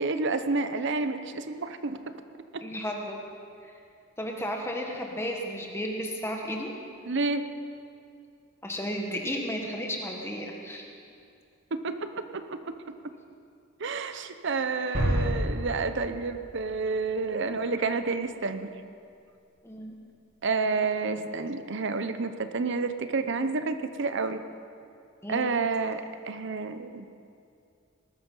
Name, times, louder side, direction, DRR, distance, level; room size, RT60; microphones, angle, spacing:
voice 1, 0.0-2.0 2.5-2.6 7.0-7.4 11.7-12.9 13.8-18.7 20.4-24.4 25.3-27.1, right 4 dB, 60° right, 10 dB, 0.8 m, -30 dB
voice 2, 2.6-3.2 4.2-6.7 8.6-10.9 14.9-15.1 19.6-19.9 21.0-21.3 25.2-25.5, equal, 10° left, 0 dB, 1.5 m, -33 dB
sound 1, 14.9-16.8, equal, 45° right, 5.0 m, -29 dB
20.0 x 12.5 x 5.5 m, 2.5 s
head